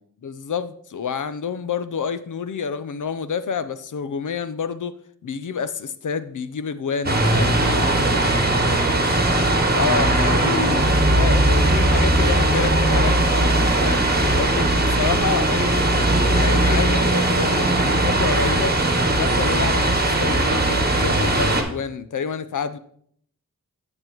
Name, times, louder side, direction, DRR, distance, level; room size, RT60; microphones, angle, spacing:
voice 1, 0.2-5.0 5.2-7.8 9.7-14.1 14.4-15.9 16.2-18.8 19.1-22.8, left 6 dB, 65° left, 0.6 m, -28 dB
sound 1, 7.0-21.6, right 1 dB, 30° right, 1.4 m, -19 dB
voice 2, 7.4-9.4 10.1-10.6, equal, 40° left, 2.9 m, -35 dB
8.8 x 7.9 x 3.0 m
cardioid pair, 50°, 33 cm